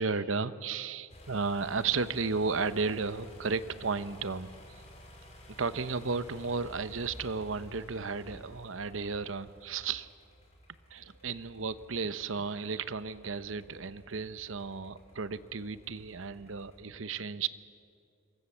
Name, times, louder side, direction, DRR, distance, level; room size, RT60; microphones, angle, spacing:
voice 1, 0.0-4.6 5.5-10.1 10.9-17.5, right 4 dB, 80° right, 13 dB, 0.9 m, -34 dB
sound 1, 1.1-16.8, left 1 dB, 35° left, 4.5 m, -53 dB
27.0 x 23.5 x 7.3 m, 2.5 s
head